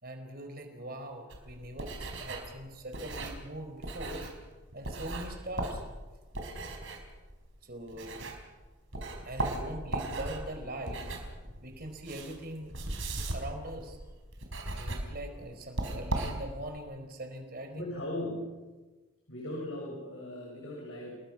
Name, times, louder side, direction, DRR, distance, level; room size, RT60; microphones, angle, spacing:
voice 1, 0.0-4.2 4.7-5.8 7.6-8.3 9.2-11.0 11.6-12.8 13.3-14.0 14.6-17.8, right 1 dB, 45° right, 6 dB, 4.3 m, -42 dB
sound 1, 1.3-8.6 8.9-16.8, right 2 dB, 70° right, 4.7 m, -38 dB
voice 2, 17.8-18.7 19.3-21.2, left 1 dB, 70° left, -2 dB, 7.1 m, -38 dB
30.0 x 20.5 x 6.0 m, 1.2 s
head